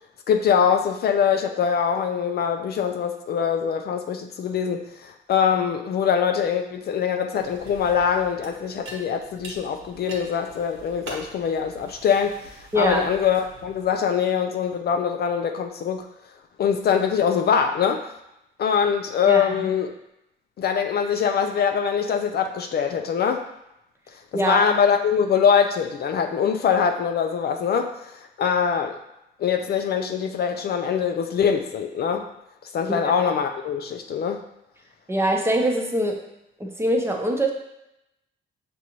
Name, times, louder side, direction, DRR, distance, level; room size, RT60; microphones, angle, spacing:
voice 1, 0.3-12.4 12.7-16.1 16.6-18.0 18.6-19.9 20.6-23.4 24.3-29.0 29.4-32.3 32.7-34.4, left 7 dB, 55° left, 5 dB, 0.4 m, -23 dB
sound 1, 7.4-14.0, right 2 dB, 80° right, 1.2 m, -44 dB
voice 2, 12.7-13.0 19.3-19.5 24.3-24.6 35.1-36.2 36.6-37.5, right 1 dB, 10° right, 1 dB, 0.6 m, -23 dB
6.0 x 2.6 x 2.9 m, 0.85 s
cardioid pair, 90°, 20 cm